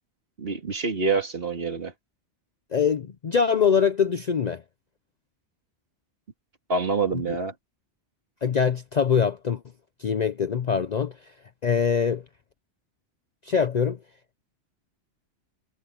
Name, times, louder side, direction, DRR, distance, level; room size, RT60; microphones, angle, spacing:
voice 1, 0.4-1.9 6.7-7.5, right 4 dB, 55° right, 2.3 m, -26 dB
voice 2, 2.7-4.6 8.4-9.6 10.0-11.1 11.6-12.2 13.4-14.0, left 6 dB, 45° left, 0.6 m, -23 dB
omnidirectional pair, 1.2 m